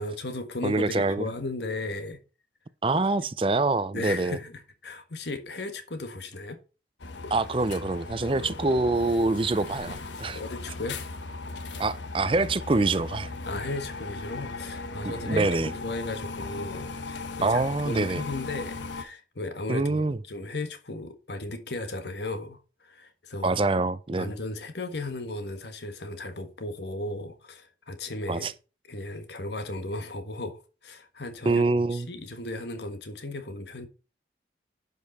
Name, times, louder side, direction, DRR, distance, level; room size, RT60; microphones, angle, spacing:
voice 1, 0.0-2.2 2.9-3.1 3.9-6.6 8.2-8.8 10.3-11.0 13.4-23.6 24.1-28.5 28.9-33.9, left 2 dB, 70° left, 1.5 m, -36 dB
voice 2, 0.6-1.3 2.8-4.4 7.3-10.4 11.8-13.3 15.0-15.7 17.4-18.2 19.7-20.2 23.4-24.3 28.3-28.5 31.5-32.1, right 3 dB, 30° right, 0.4 m, -25 dB
sound 1, 7.0-19.0, left 3 dB, 85° left, 1.1 m, -37 dB
11.0 x 5.3 x 4.1 m
head